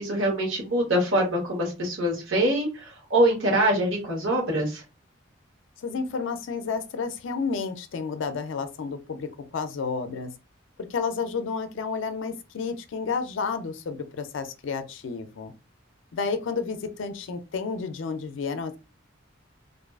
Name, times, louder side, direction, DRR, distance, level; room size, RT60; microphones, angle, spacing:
voice 1, 0.0-4.8, right 1 dB, 75° right, 1.1 m, -24 dB
voice 2, 5.8-10.3 10.9-15.5 16.1-18.8, left 5 dB, 65° left, 0.4 m, -31 dB
2.4 x 2.3 x 2.3 m
head